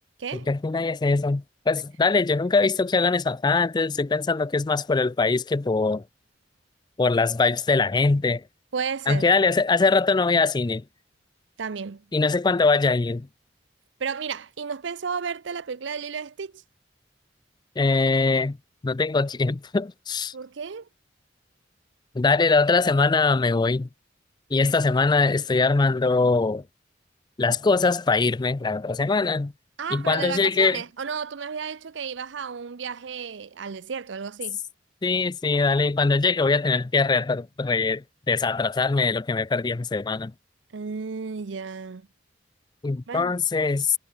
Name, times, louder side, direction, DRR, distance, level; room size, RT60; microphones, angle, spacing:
voice 1, 0.3-6.0 7.0-8.4 9.1-10.8 12.1-13.3 17.8-18.6 18.8-20.3 22.2-23.9 24.5-26.6 27.4-29.5 29.9-30.8 35.0-40.3 42.8-43.9, left 3 dB, 25° left, 0.4 m, -22 dB
voice 2, 8.7-9.3 11.6-12.0 14.0-16.6 20.3-20.9 29.8-34.6 40.7-42.1 43.1-43.3, right 6 dB, 75° right, 0.6 m, -33 dB
head